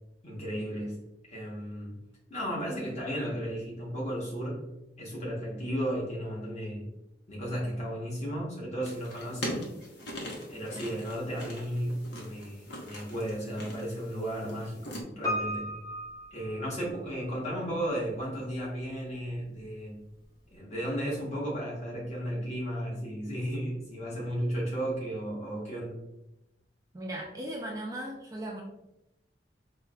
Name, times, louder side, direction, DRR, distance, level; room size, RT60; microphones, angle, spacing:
voice 1, 0.2-1.0 1.3-2.0 2.3-4.7 5.0-6.9 7.3-9.7 10.5-15.7 16.3-20.0 20.5-26.0, equal, 35° left, -5 dB, 1.0 m, -34 dB
sound 1, 8.8-15.0, left 1 dB, 85° left, 0.8 m, -41 dB
Piano, 15.2-17.3 17.5-17.6, equal, 20° left, 0.7 m, -35 dB
voice 2, 26.9-28.6, right 1 dB, 20° right, -1 dB, 0.3 m, -37 dB
4.3 x 2.0 x 2.3 m, 0.90 s
head